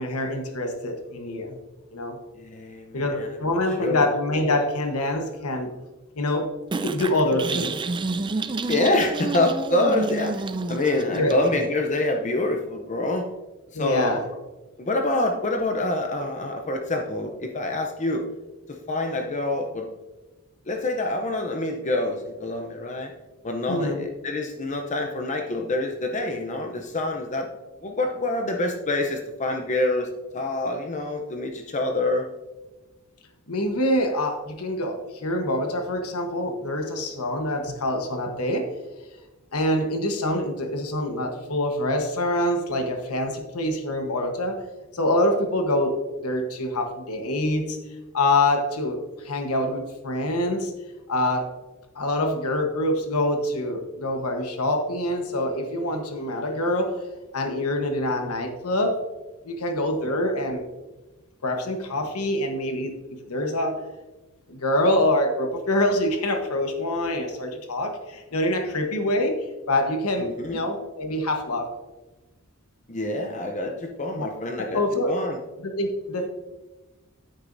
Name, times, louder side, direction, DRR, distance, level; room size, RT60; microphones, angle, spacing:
voice 1, 0.0-1.6 1.9-2.2 2.9-5.7 6.2-6.5 6.8-7.7 11.1-11.4 13.7-14.2 23.7-24.0 33.5-38.7 39.5-44.6 44.9-47.8 48.1-50.7 51.1-51.5 51.9-57.1 57.3-59.0 59.4-60.6 61.4-62.9 63.3-63.8 64.5-69.4 69.7-71.7 74.1-74.3 74.6-75.2 75.6-76.3, left 1 dB, 85° left, 4 dB, 1.2 m, -25 dB
voice 2, 2.4-3.4 3.8-4.1 8.7-13.3 13.7-14.2 14.8-18.3 18.7-19.9 20.7-23.1 23.4-27.5 27.8-32.3 70.2-70.6 72.9-74.8 75.1-75.4, left 2 dB, 35° left, 4 dB, 0.7 m, -26 dB
sound 1, 6.7-11.7, right 3 dB, 20° right, 0.4 m, -29 dB
9.7 x 8.9 x 2.6 m, 1.1 s
head